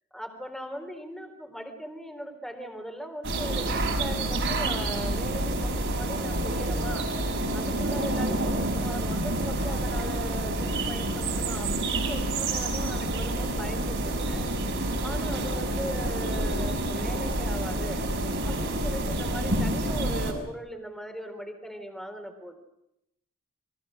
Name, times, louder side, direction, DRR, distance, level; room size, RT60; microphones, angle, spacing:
voice 1, 0.1-18.1 18.4-22.6, equal, ahead, 6 dB, 3.6 m, -40 dB
sound 1, 3.2-20.3, right 1 dB, 60° right, 5.8 m, -28 dB
30.0 x 23.0 x 6.5 m, 0.81 s
head